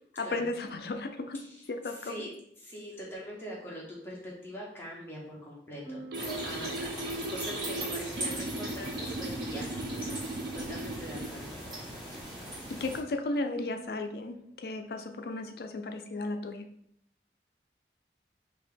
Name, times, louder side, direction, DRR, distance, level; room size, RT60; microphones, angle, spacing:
voice 1, 0.2-1.4 1.7-2.3 12.1-12.2 12.7-16.7, left 2 dB, 60° left, 7 dB, 0.4 m, -35 dB
voice 2, 1.8-2.3 2.6-10.2 10.5-11.6, equal, 10° left, -5 dB, 1.1 m, -43 dB
sound 1, 5.8-13.9, right 2 dB, 30° left, 1.4 m, -51 dB
sound 2, 6.1-13.0, right 1 dB, 25° right, 1.5 m, -40 dB
sound 3, 6.1-11.3, right 2 dB, 60° right, 0.4 m, -37 dB
4.3 x 2.8 x 3.4 m, 0.71 s
head